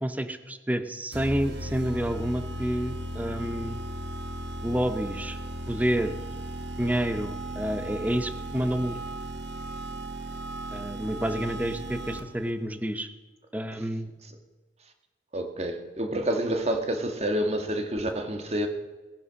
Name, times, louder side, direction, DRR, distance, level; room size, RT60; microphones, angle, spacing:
voice 1, 0.0-3.8 4.6-5.4 5.7-6.1 6.8-9.0 10.7-13.1 13.5-14.1, equal, 10° right, 10 dB, 0.8 m, -29 dB
sound 1, 1.1-12.5, right 1 dB, 85° right, 1.8 m, -36 dB
voice 2, 15.3-18.7, right 1 dB, 40° right, 6 dB, 1.8 m, -28 dB
18.0 x 10.5 x 6.3 m, 1.2 s
head